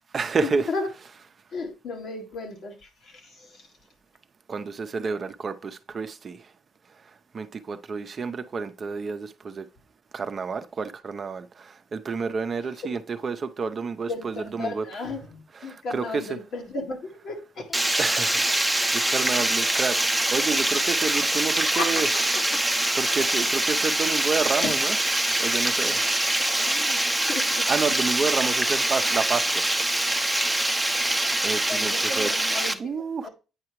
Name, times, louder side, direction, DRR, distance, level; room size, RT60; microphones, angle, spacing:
voice 1, 0.1-0.7 4.5-6.4 7.3-9.7 10.1-14.8 15.6-16.2 18.0-20.0 20.3-22.1 22.9-24.9 25.4-26.0 27.7-29.8 31.4-32.3 32.8-33.3, right 5 dB, 45° right, 0.6 m, -29 dB
voice 2, 1.5-3.7 12.8-12.9 14.1-17.8 19.4-19.5 21.7-22.1 22.3-22.6 23.4-23.5 24.6-24.8 25.9-26.1 26.6-28.3 31.7-33.3, left 3 dB, 70° left, 1.7 m, -35 dB
Water, 17.7-32.7, right 1 dB, 5° right, 0.7 m, -24 dB
8.8 x 4.7 x 3.1 m
cardioid pair, 90°, 0 cm